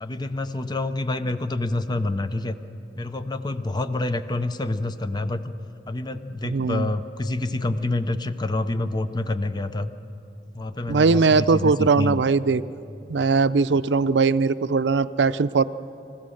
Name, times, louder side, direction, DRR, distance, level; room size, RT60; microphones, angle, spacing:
voice 1, 0.0-2.6 3.0-5.4 5.9-9.9 10.5-12.2, left 2 dB, 25° left, 11 dB, 0.6 m, -27 dB
voice 2, 6.4-6.9 10.9-12.6 13.1-15.6, right 4 dB, 75° right, 14 dB, 0.5 m, -20 dB
26.0 x 15.5 x 6.5 m, 2.7 s
head